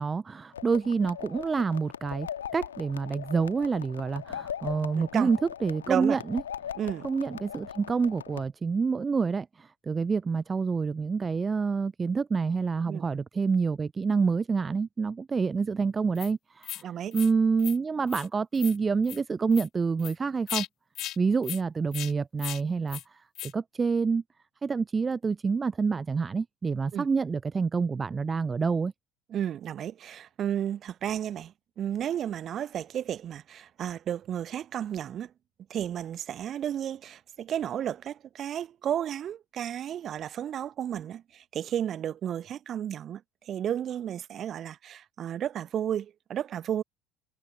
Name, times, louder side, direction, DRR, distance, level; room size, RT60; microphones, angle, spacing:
voice 1, 0.0-2.3 2.5-6.4 7.0-16.9 17.1-20.7 21.2-24.2 24.6-28.9, right 5 dB, 25° right, 0.5 m, -27 dB
sound 1, 0.5-8.4, left 9 dB, 75° left, 1.7 m, -40 dB
voice 2, 4.9-5.3 5.9-6.2 6.8-7.1 12.9-13.0 16.8-17.1 26.9-27.1 29.3-35.3 35.7-46.8, right 10 dB, 40° right, 1.2 m, -33 dB
sound 2, 16.2-16.3 16.6-16.8 17.1-17.3 17.6-17.8 18.1-18.3 18.6-18.8 19.0-19.2 19.5-19.7 20.0-20.1 20.5-20.7 21.0-21.2 21.4-21.6 21.9-22.1 22.4-22.6 22.9-23.0 23.4-23.5, left 13 dB, 50° left, 0.4 m, -36 dB
figure-of-eight pair, 60°, 0 cm